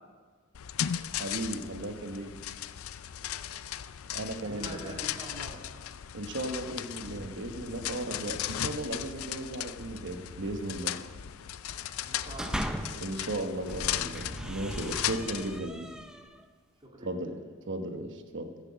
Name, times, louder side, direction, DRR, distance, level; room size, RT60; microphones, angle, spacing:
sound 1, 0.5-15.6, left 11 dB, 75° left, 0.4 m, -37 dB
voice 1, 0.9-2.3 4.1-4.9 6.1-11.0 12.9-15.9 17.0-18.5, right 1 dB, 60° right, 7 dB, 1.1 m, -36 dB
voice 2, 4.4-5.6 11.7-12.6 16.8-17.1, right 1 dB, 25° right, -2 dB, 2.5 m, -45 dB
sound 2, 7.0-16.0, equal, 40° right, 1.9 m, -47 dB
sound 3, 12.0-13.1 13.6-16.4, equal, 5° right, 0.7 m, -39 dB
14.0 x 8.0 x 6.2 m, 1.5 s
head